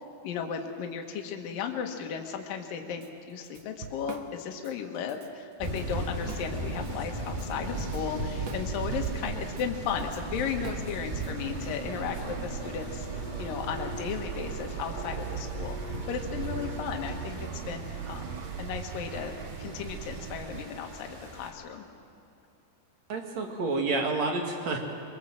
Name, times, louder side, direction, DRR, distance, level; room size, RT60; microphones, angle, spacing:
voice 1, 0.2-21.9, left 7 dB, 65° left, 3 dB, 3.0 m, -35 dB
Drum kit / Drum, 3.0-3.1 3.4-4.7 5.1-5.3 5.6-6.9 7.3-11.7, right 6 dB, 70° right, 1.6 m, -44 dB
sound 1, 5.6-21.5, right 1 dB, 30° right, 0.9 m, -37 dB
sound 2, 7.1-20.7, right 12 dB, 85° right, 2.0 m, -40 dB
voice 2, 23.1-24.8, right 3 dB, 50° right, 2 dB, 2.8 m, -29 dB
23.0 x 23.0 x 7.6 m, 2.6 s
omnidirectional pair, 4.7 m